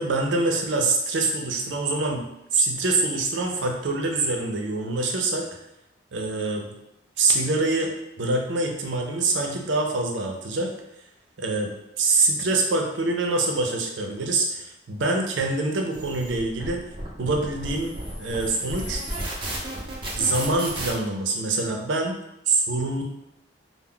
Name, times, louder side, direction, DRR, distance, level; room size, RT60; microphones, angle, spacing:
voice 1, 0.0-2.2 2.5-5.5 6.1-6.7 7.2-7.9 8.2-10.7 11.4-11.7 12.0-16.8 17.2-19.0 20.2-22.1 22.5-23.0, right 3 dB, 90° right, 2 dB, 0.5 m, -25 dB
sound 1, 15.9-20.9, right 1 dB, 30° right, 0.5 m, -34 dB
2.2 x 2.0 x 3.6 m, 0.84 s
head